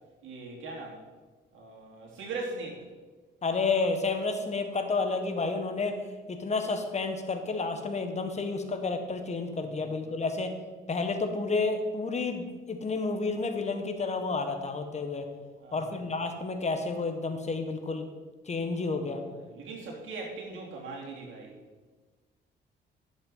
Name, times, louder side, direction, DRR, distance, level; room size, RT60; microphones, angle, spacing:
voice 1, 0.2-1.0 1.5-2.8 9.6-10.2 15.6-16.0 18.9-21.6, right 3 dB, 80° right, -1 dB, 3.0 m, -41 dB
voice 2, 3.4-6.0 6.3-10.5 10.9-15.3 15.7-18.1 18.5-19.2, left 3 dB, 35° left, 6 dB, 1.5 m, -30 dB
10.5 x 7.1 x 5.7 m, 1.3 s
cardioid pair, 90°, 20 cm